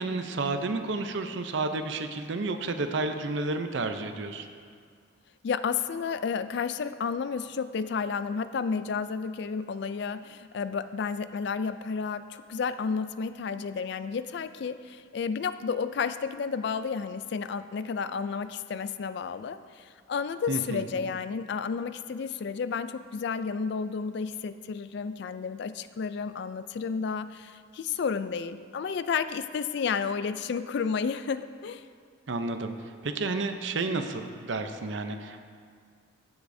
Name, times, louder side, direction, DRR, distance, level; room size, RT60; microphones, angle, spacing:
voice 1, 0.0-4.5 20.5-20.9 32.3-32.7 33.0-35.5, right 3 dB, 60° right, 7 dB, 0.6 m, -31 dB
voice 2, 5.4-31.8, left 5 dB, 55° left, 12 dB, 0.3 m, -31 dB
15.0 x 8.0 x 2.7 m, 2.1 s
head